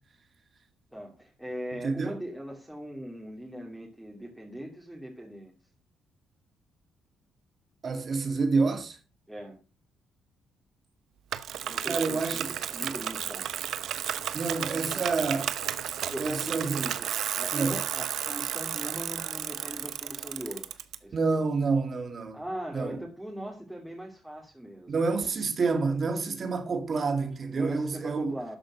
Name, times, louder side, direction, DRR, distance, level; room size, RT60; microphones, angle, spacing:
voice 1, 0.9-5.5 9.3-9.6 11.6-12.4 12.7-13.5 16.0-17.1 17.4-20.6 21.0-21.5 22.3-24.9 27.5-28.6, equal, 5° right, 2.9 m, -40 dB
voice 2, 1.8-2.1 7.8-9.0 11.9-12.5 12.8-12.9 14.3-15.5 16.2-16.8 17.5-17.8 21.1-22.4 22.7-23.0 24.9-28.3, right 4 dB, 45° right, 2.0 m, -28 dB
Bicycle, 11.3-20.9, right 10 dB, 75° right, 0.9 m, -33 dB
13.0 x 5.0 x 6.3 m
cardioid pair, 90°, 0 cm